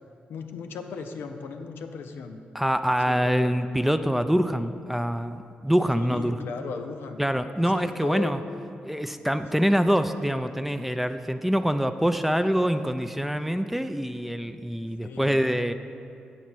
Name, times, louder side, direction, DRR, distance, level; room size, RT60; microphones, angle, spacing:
voice 1, 0.3-2.4 3.1-3.5 6.0-7.2 7.6-8.4 15.0-15.3, left 5 dB, 75° left, 6 dB, 0.5 m, -37 dB
voice 2, 2.5-6.4 7.2-8.4 8.8-15.7, equal, 5° right, 9 dB, 0.4 m, -25 dB
7.4 x 4.0 x 6.1 m, 2.5 s
supercardioid pair, 50°, 4 cm